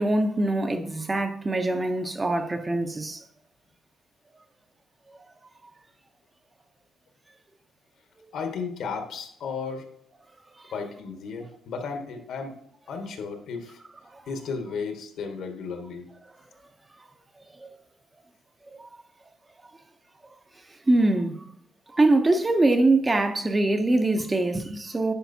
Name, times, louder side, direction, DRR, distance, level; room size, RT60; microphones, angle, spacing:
voice 1, 0.0-3.2 17.6-17.7 18.8-18.9 20.9-21.4 21.9-25.1, right 2 dB, 20° right, 0.6 m, -23 dB
voice 2, 8.3-9.9 10.7-12.5 12.9-13.8 14.3-16.1, left 5 dB, 70° left, 1.4 m, -34 dB
10.0 x 5.0 x 2.7 m
cardioid pair, 145°, 0 cm